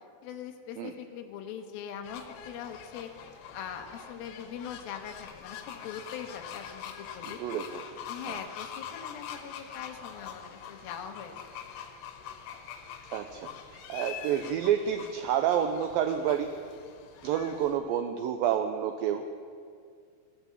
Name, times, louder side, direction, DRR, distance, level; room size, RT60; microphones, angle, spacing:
voice 1, 0.2-3.1 3.5-7.4 8.1-11.3, left 8 dB, 70° left, 4 dB, 2.6 m, -42 dB
sound 1, 2.0-17.8, left 8 dB, 90° left, 3.1 m, -44 dB
voice 2, 7.3-7.8 8.3-8.4 13.1-13.5 13.9-16.5 17.2-19.2, right 9 dB, 90° right, 6 dB, 2.0 m, -29 dB
14.5 x 9.5 x 7.3 m, 2.2 s
omnidirectional pair, 4.8 m